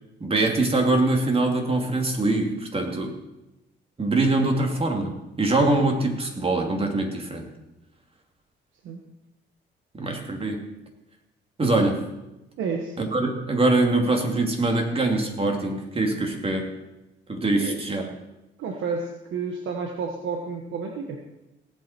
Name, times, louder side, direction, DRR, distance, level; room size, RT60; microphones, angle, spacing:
voice 1, 0.2-3.1 4.0-7.5 9.9-10.6 11.6-12.0 13.0-16.7 17.3-18.0, right 2 dB, 30° right, 2 dB, 2.7 m, -23 dB
voice 2, 12.6-13.0 17.6-17.8 18.6-21.2, right 5 dB, 80° right, 3 dB, 1.4 m, -30 dB
17.5 x 8.7 x 4.5 m, 0.96 s
cardioid pair, 90°, 20 cm